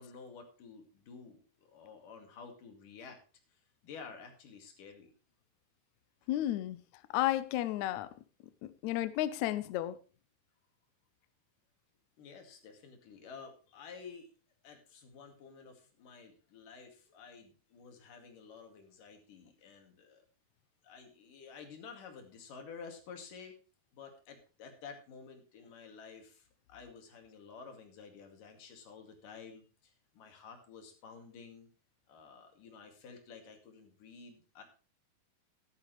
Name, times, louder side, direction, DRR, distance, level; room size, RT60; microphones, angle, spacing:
voice 1, 0.0-3.2 3.5-5.1 12.2-14.3 14.6-20.2 20.8-23.5 23.9-31.7 32.1-34.6, left 5 dB, 65° left, 3.7 m, -51 dB
voice 2, 6.3-6.8 7.1-8.1 8.6-10.0, left 14 dB, 85° left, 1.6 m, -32 dB
13.5 x 11.5 x 3.1 m
omnidirectional pair, 4.3 m